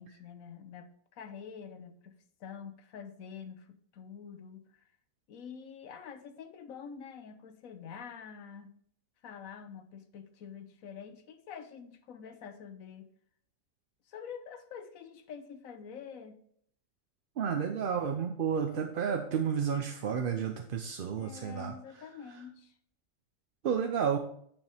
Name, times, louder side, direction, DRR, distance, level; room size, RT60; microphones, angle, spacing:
voice 1, 0.0-2.1 2.4-4.8 5.3-8.7 9.2-13.1 14.1-16.4 21.2-22.7, left 7 dB, 75° left, 9 dB, 1.2 m, -47 dB
voice 2, 17.4-21.7 23.6-24.2, right 7 dB, 55° right, 4 dB, 0.7 m, -31 dB
9.4 x 5.4 x 3.4 m, 0.65 s
omnidirectional pair, 1.4 m